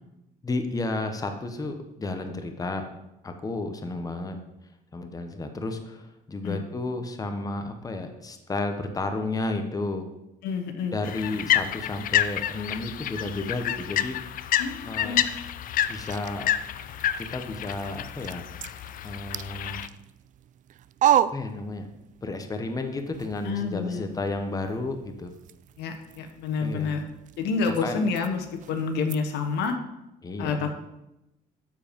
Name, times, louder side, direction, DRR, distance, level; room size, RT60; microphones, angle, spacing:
voice 1, 0.4-2.8 3.2-4.4 4.9-10.1 10.9-14.2 14.8-15.2 15.9-16.5 17.2-18.4 19.0-19.8 21.3-21.9 22.2-25.3 26.6-27.0 27.8-28.0 30.2-30.7, left 2 dB, 20° left, 6 dB, 1.1 m, -32 dB
voice 2, 10.4-10.9 14.6-15.2 23.4-24.1 25.8-27.0 27.4-29.8 30.4-30.8, left 5 dB, 85° left, 6 dB, 1.3 m, -28 dB
sound 1, 11.0-19.9, left 11 dB, 55° left, 0.5 m, -29 dB
sound 2, 15.1-22.2 22.6-29.8, right 11 dB, 50° right, 0.4 m, -34 dB
12.5 x 4.8 x 5.3 m, 0.90 s
cardioid pair, 110°, 17 cm